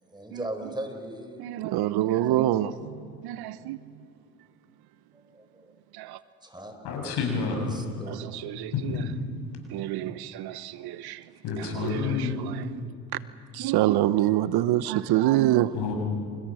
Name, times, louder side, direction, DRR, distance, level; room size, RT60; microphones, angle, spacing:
voice 1, 0.1-1.4 2.0-2.5 5.3-5.7 6.4-6.7 7.6-8.1, right 1 dB, 10° right, 4.9 m, -38 dB
voice 2, 1.4-3.8 5.9-6.2 8.1-9.0 9.7-11.3 11.6-12.6 13.1-13.2 13.5-15.7, right 14 dB, 65° right, 1.0 m, -26 dB
voice 3, 6.8-7.8 8.7-9.1 11.4-12.4 15.7-15.9, left 5 dB, 65° left, 7.7 m, -29 dB
29.0 x 28.5 x 6.4 m
hypercardioid pair, 65°, 42 cm